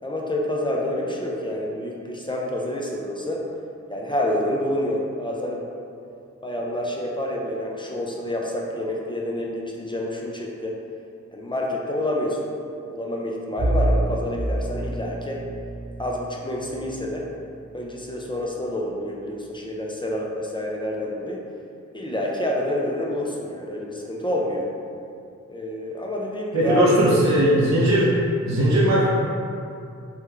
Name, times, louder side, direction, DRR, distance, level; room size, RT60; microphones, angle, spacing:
voice 1, 0.0-3.5 3.9-5.7 6.4-10.8 11.3-12.5 12.9-15.5 16.0-17.3 17.7-21.4 21.9-24.7 25.5-26.9, left 1 dB, 15° left, -2 dB, 0.4 m, -28 dB
Bowed string instrument, 13.6-18.7, right 1 dB, ahead, 1.4 m, -28 dB
voice 2, 26.5-28.1 28.4-29.0, right 1 dB, 70° right, -6 dB, 0.6 m, -18 dB
3.5 x 2.2 x 3.1 m, 2.5 s
cardioid pair, 65°, 29 cm